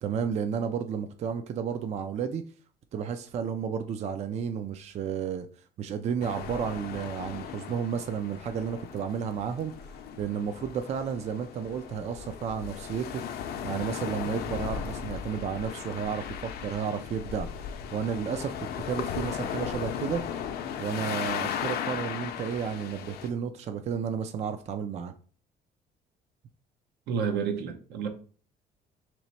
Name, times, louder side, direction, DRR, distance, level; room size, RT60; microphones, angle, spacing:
voice 1, 0.0-2.4 2.9-5.5 5.8-9.7 10.2-17.5 17.9-18.5 18.8-20.2 20.8-25.1, right 7 dB, 40° right, 0.4 m, -32 dB
sound 1, 6.2-23.3, left 8 dB, 65° left, 0.5 m, -36 dB
voice 2, 27.1-28.1, right 6 dB, 75° right, 0.8 m, -30 dB
3.0 x 3.0 x 4.2 m
cardioid pair, 110°, 17 cm